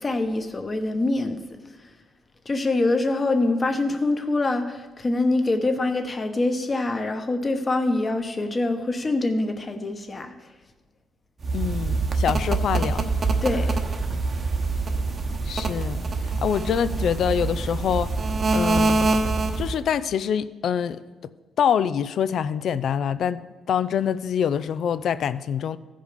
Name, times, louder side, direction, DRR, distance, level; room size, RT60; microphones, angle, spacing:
voice 1, 0.0-1.4 2.4-10.3 13.4-13.8, left 2 dB, 30° left, 6 dB, 1.1 m, -24 dB
sound 1, 11.4-19.8, right 3 dB, 40° right, 1.0 m, -25 dB
voice 2, 11.5-13.1 15.5-18.2 18.5-19.2 19.6-21.0 21.6-25.8, left 8 dB, 65° left, 14 dB, 0.4 m, -25 dB
15.0 x 5.2 x 5.1 m, 1.2 s
cardioid pair, 90°, 0 cm